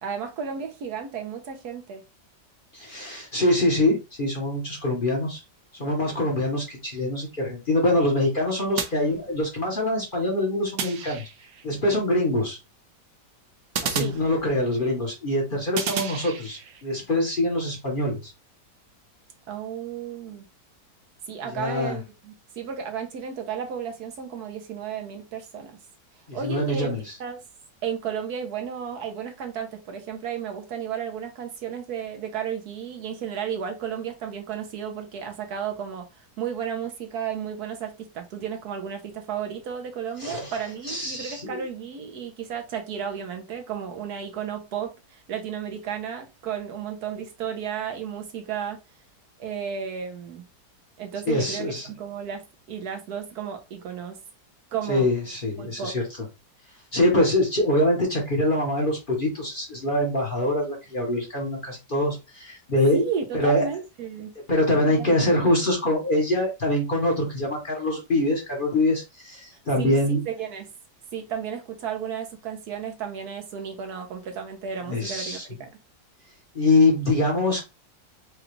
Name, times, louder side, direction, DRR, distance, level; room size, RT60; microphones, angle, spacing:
voice 1, 0.0-2.0 14.0-14.1 19.5-20.4 21.3-25.8 26.3-26.9 27.2-27.4 27.8-48.8 49.4-50.4 51.0-54.2 54.7-55.1 55.6-55.9 62.9-64.3 65.0-65.1 69.8-70.0 70.3-70.7 71.1-75.7, right 7 dB, 70° right, 1.2 m, -33 dB
voice 2, 2.7-5.4 5.7-11.2 11.6-12.6 13.8-18.3 21.4-22.0 26.3-27.1 40.2-40.5 40.8-41.6 51.3-51.9 54.9-56.0 56.9-63.0 63.3-63.7 64.5-70.2 74.9-75.4 76.5-77.6, left 1 dB, 35° left, 1.0 m, -24 dB
sound 1, 8.8-9.7 10.8-11.7 13.7-14.9 15.8-16.8, right 7 dB, 85° right, 1.4 m, -33 dB
4.9 x 2.3 x 3.0 m
omnidirectional pair, 1.8 m